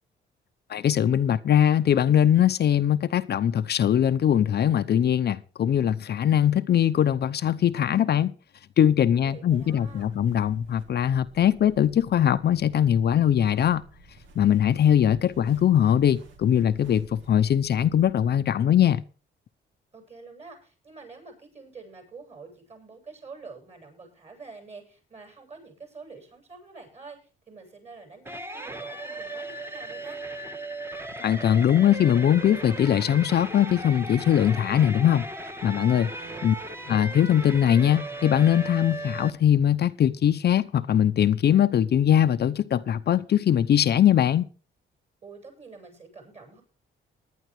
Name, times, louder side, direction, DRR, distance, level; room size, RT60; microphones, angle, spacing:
voice 1, 0.7-8.3 8.8-13.8 14.4-19.0 31.2-35.3 35.6-36.1 36.4-36.5 36.9-44.5, left 10 dB, 55° left, 0.7 m, -21 dB
voice 2, 9.0-10.1 19.9-27.2 27.5-30.2 35.9-36.9 45.2-46.6, right 4 dB, 35° right, 7.8 m, -47 dB
sound 1, 9.5-18.3, right 2 dB, 75° right, 2.6 m, -52 dB
sound 2, 28.2-39.3, right 2 dB, 10° right, 1.6 m, -37 dB
19.0 x 11.0 x 3.2 m
cardioid pair, 90°, 20 cm